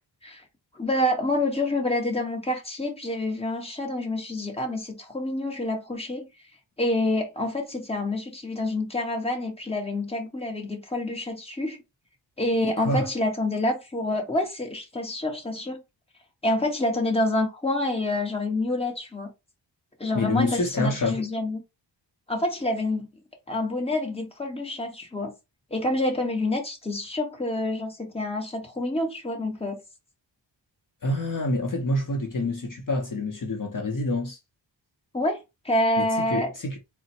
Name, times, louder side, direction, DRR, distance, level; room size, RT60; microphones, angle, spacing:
voice 1, 0.7-6.3 6.8-11.8 12.4-15.8 16.4-19.3 20.0-21.6 22.3-23.1 23.5-25.3 25.7-29.8 35.1-36.5, left 1 dB, 15° left, 1.1 m, -27 dB
voice 2, 20.1-21.2 31.0-34.4 36.0-36.8, left 2 dB, 45° left, 0.8 m, -27 dB
3.9 x 2.2 x 4.3 m
wide cardioid pair, 130°, 45 cm